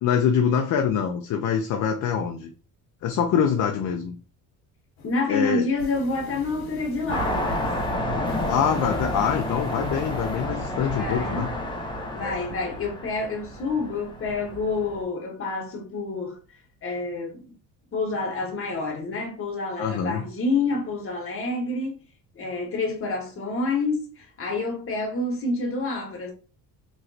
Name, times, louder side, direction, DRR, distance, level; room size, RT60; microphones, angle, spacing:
voice 1, 0.0-2.5 3.0-4.2 5.3-5.7 8.5-11.5 12.2-12.5 19.8-20.2, left 7 dB, 55° left, 0.5 m, -24 dB
sound 1, 5.0-5.3 5.6-10.5, left 2 dB, 80° left, 1.0 m, -43 dB
voice 2, 5.0-7.7 10.9-11.5 12.1-16.4 16.8-17.5 17.9-22.0 22.4-26.3, left 3 dB, 35° left, 1.1 m, -28 dB
sound 2, 7.1-15.0, left 1 dB, 15° left, 0.7 m, -30 dB
3.1 x 2.9 x 2.6 m
cardioid pair, 110°, 37 cm